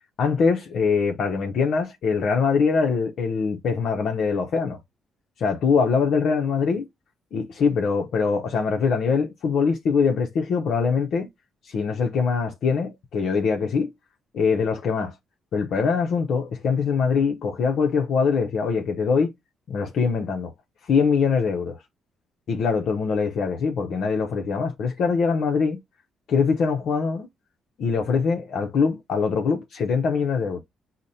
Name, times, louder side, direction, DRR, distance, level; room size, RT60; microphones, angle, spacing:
voice 1, 0.2-4.8 5.4-6.9 7.3-11.3 11.7-13.9 14.3-15.1 15.5-19.3 19.7-20.5 20.9-21.8 22.5-25.8 26.3-27.3 27.8-30.6, left 5 dB, 65° left, 0.7 m, -23 dB
4.8 x 2.2 x 4.1 m
cardioid pair, 105°, 0 cm